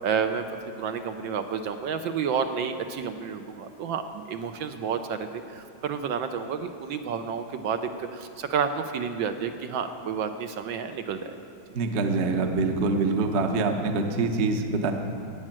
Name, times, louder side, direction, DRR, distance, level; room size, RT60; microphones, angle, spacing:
voice 1, 0.0-11.4, right 6 dB, 75° right, 7 dB, 1.4 m, -30 dB
voice 2, 11.7-14.9, right 3 dB, 45° right, 5 dB, 1.0 m, -25 dB
14.0 x 8.7 x 8.9 m, 2.5 s
omnidirectional pair, 2.3 m